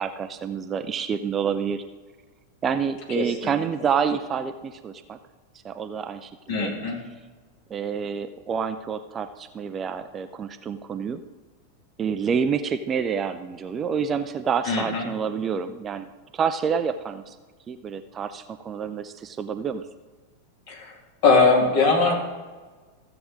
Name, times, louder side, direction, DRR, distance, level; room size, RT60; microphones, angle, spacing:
voice 1, 0.0-1.8 2.6-5.2 5.6-6.7 7.7-11.2 12.0-16.1 16.3-17.4 17.7-19.8, right 6 dB, 25° right, 10 dB, 0.5 m, -28 dB
voice 2, 3.2-3.6 6.5-7.0 14.6-15.1 20.7-20.9 21.2-22.2, left 3 dB, 50° left, -1 dB, 2.5 m, -21 dB
15.0 x 7.7 x 3.6 m, 1.3 s
figure-of-eight pair, 90°, 0 cm